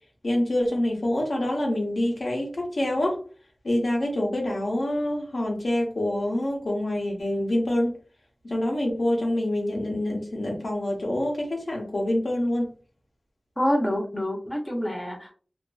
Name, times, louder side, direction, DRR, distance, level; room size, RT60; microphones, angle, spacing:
voice 1, 0.2-3.2 3.6-7.9 8.4-12.7, left 1 dB, 80° left, 0 dB, 0.9 m, -26 dB
voice 2, 13.6-15.3, equal, 20° left, 1 dB, 0.7 m, -26 dB
2.5 x 2.5 x 2.3 m, 0.39 s
wide cardioid pair, 50°, 0 cm